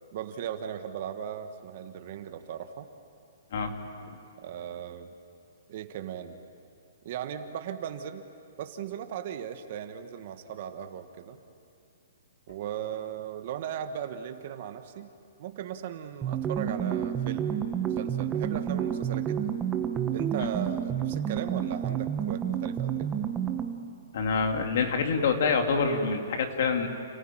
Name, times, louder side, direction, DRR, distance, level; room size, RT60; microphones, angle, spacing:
voice 1, 0.1-2.9 4.4-5.1 5.7-6.4 7.0-8.3 8.6-11.4 12.5-15.1 15.4-19.5 20.1-23.1, right 9 dB, 45° right, 8 dB, 1.4 m, -37 dB
sound 1, 16.2-23.9, right 9 dB, 15° right, 1.1 m, -30 dB
voice 2, 24.1-26.9, left 5 dB, 55° left, 4 dB, 2.6 m, -26 dB
29.5 x 15.5 x 9.1 m, 2.5 s
hypercardioid pair, 160°, 0 cm